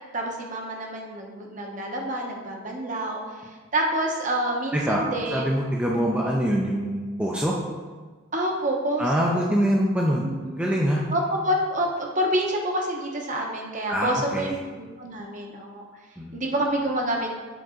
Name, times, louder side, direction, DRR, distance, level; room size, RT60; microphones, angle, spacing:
voice 1, 0.1-3.2 3.7-5.6 8.3-9.4 10.2-10.6 11.1-15.9 16.3-17.4, right 1 dB, 35° right, 1 dB, 0.8 m, -28 dB
voice 2, 4.7-5.0 5.3-7.5 9.0-10.3 10.6-11.0 13.9-14.6 16.2-16.4, equal, 5° right, -3 dB, 0.4 m, -24 dB
7.7 x 3.8 x 3.7 m, 1.4 s
head